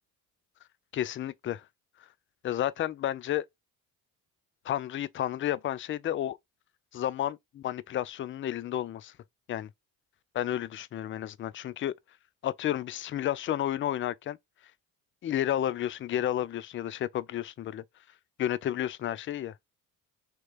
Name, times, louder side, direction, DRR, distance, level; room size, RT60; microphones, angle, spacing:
voice 1, 0.9-1.6 2.4-3.5 4.6-6.4 6.9-9.1 9.5-9.7 10.3-11.9 12.4-14.4 15.2-17.8 18.4-19.5, left 11 dB, 30° left, 0.3 m, -31 dB
3.0 x 2.9 x 3.2 m
hypercardioid pair, 55°, 44 cm